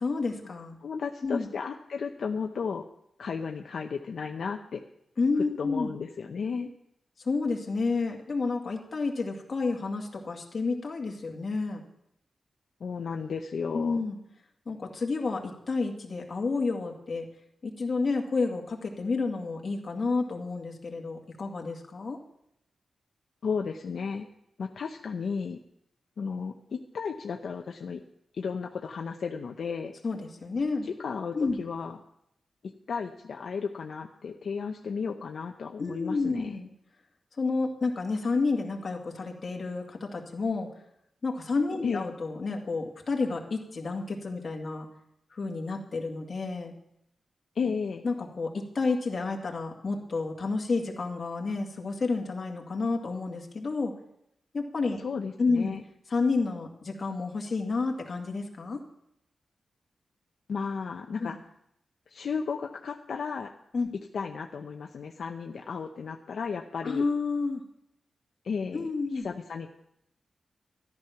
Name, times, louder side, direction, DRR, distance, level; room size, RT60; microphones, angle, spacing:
voice 1, 0.0-0.8 1.2-1.5 5.2-5.9 7.2-11.8 13.7-14.2 14.7-17.3 17.6-22.2 30.0-30.9 31.3-31.6 35.8-36.7 37.4-40.7 41.2-44.9 45.3-46.7 48.0-53.9 54.5-55.0 55.4-55.8 56.1-58.8 61.2-61.3 63.7-63.9 66.8-67.6 68.7-69.3, left 3 dB, 35° left, 1 dB, 2.0 m, -30 dB
voice 2, 0.8-2.8 3.2-4.8 5.6-6.7 12.8-14.0 23.4-24.3 24.6-25.6 26.2-28.0 28.4-29.9 30.8-32.0 32.9-36.6 41.8-42.0 47.5-48.0 55.0-55.8 60.5-61.4 62.1-63.5 64.1-67.0 68.4-68.9 69.2-69.7, left 5 dB, 65° left, 3 dB, 0.7 m, -34 dB
14.0 x 11.0 x 5.8 m, 0.77 s
wide cardioid pair, 175°, 0 cm